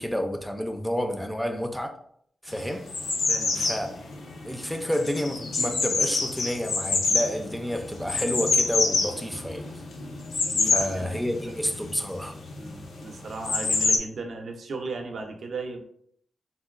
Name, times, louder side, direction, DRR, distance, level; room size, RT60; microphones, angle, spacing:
voice 1, 0.0-2.0 2.4-2.9 3.5-3.9 4.4-9.7 10.6-12.4, equal, 5° left, 0.3 m, -30 dB
sound 1, 2.5-14.0, left 3 dB, 90° left, 0.5 m, -27 dB
voice 2, 3.3-3.8 10.4-11.3 12.6-15.9, right 3 dB, 70° right, 0.5 m, -36 dB
3.8 x 2.2 x 2.3 m
wide cardioid pair, 100°, 0 cm